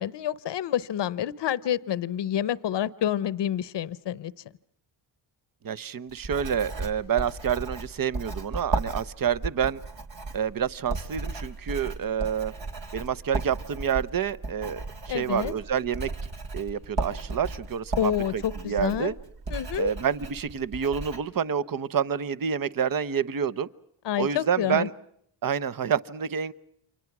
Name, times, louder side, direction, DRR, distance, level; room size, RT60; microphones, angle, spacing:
voice 1, 0.0-4.3 15.1-15.5 18.0-19.1 19.5-19.9 24.0-24.9, left 10 dB, 60° left, 0.9 m, -28 dB
voice 2, 5.6-9.8 10.3-12.5 12.9-16.1 16.5-19.1 19.8-23.7 24.2-24.9 25.4-26.5, right 8 dB, 45° right, 1.0 m, -28 dB
Writing, 6.1-21.2, right 3 dB, 65° right, 3.6 m, -35 dB
28.5 x 24.5 x 6.1 m
cardioid pair, 60°, 49 cm